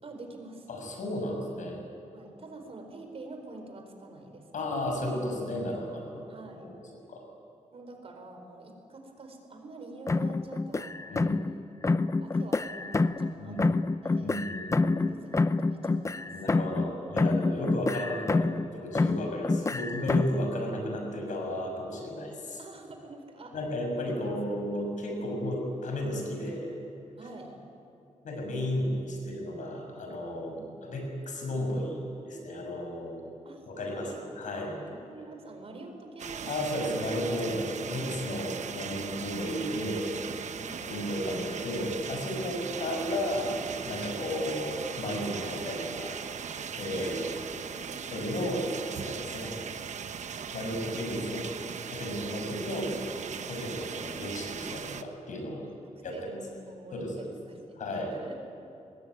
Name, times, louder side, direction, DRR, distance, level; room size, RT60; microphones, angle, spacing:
voice 1, 0.0-0.7 2.1-4.6 6.3-6.7 7.7-11.4 12.1-14.4 15.1-16.4 17.5-17.8 22.6-23.5 24.0-24.3 27.2-27.6 30.5-30.8 33.4-34.2 34.9-36.9 37.9-38.3 40.5-40.8 46.9-48.3 53.4-53.7 55.8-57.8 58.1-58.4, right 2 dB, 50° right, 4 dB, 4.5 m, -46 dB
voice 2, 0.7-1.8 4.5-6.2 7.1-7.2 11.1-11.4 13.4-13.7 14.2-15.0 16.3-22.6 23.5-26.7 28.2-33.2 33.7-34.8 36.4-40.0 40.8-43.6 43.8-46.1 46.5-47.3 48.1-48.6 49.0-49.6 50.5-51.4 51.8-52.9 53.5-55.6 56.0-56.2 56.9-57.3 57.8-58.1, left 1 dB, 90° left, 2 dB, 6.6 m, -33 dB
sound 1, 10.1-11.6 11.8-13.3 13.6-16.9 17.2-18.7 18.9-20.4, left 3 dB, 25° left, 0.6 m, -27 dB
sound 2, 36.2-55.0, right 7 dB, 70° right, 1.0 m, -39 dB
24.0 x 20.5 x 9.6 m, 2.6 s
wide cardioid pair, 135°, 13 cm